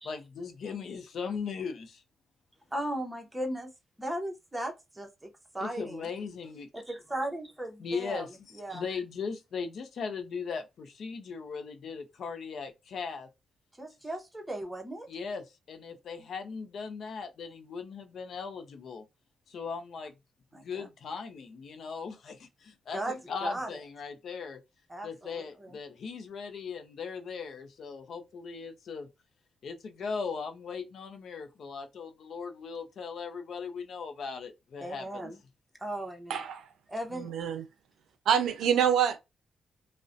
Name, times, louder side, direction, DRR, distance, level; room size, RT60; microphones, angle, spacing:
voice 1, 0.0-2.0 5.6-6.7 7.8-8.3 8.7-13.3 15.1-19.0 19.5-20.1 20.6-24.6 25.0-29.1 29.6-35.3, left 5 dB, 65° left, 0.5 m, -38 dB
voice 2, 2.7-3.7 4.0-6.1 6.7-8.3 8.5-8.8 13.8-15.1 20.5-20.9 22.9-23.7 24.9-25.8 34.8-35.4 35.8-36.4 36.9-37.3, right 1 dB, 10° right, 0.7 m, -37 dB
voice 3, 36.3-36.7 37.1-37.6 38.3-39.2, right 8 dB, 80° right, 0.4 m, -26 dB
2.4 x 2.1 x 2.5 m
cardioid pair, 90°, 0 cm